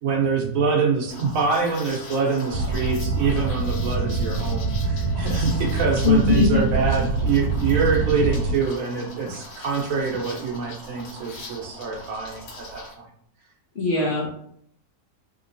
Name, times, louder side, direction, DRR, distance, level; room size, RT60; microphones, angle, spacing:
voice 1, 0.0-13.0 14.0-14.1, right 5 dB, 70° right, 0 dB, 1.0 m, -25 dB
Liquid, 1.1-12.9, left 1 dB, 80° left, 1.4 m, -41 dB
Wind instrument woodwind instrument, 1.6-6.2, left 7 dB, 30° right, 0.9 m, -43 dB
sound 1, 2.5-8.5, right 4 dB, 90° right, 1.2 m, -25 dB
voice 2, 6.0-6.7 13.7-14.3, left 4 dB, 50° left, -4 dB, 0.8 m, -20 dB
2.9 x 2.8 x 2.5 m, 0.67 s
omnidirectional pair, 1.6 m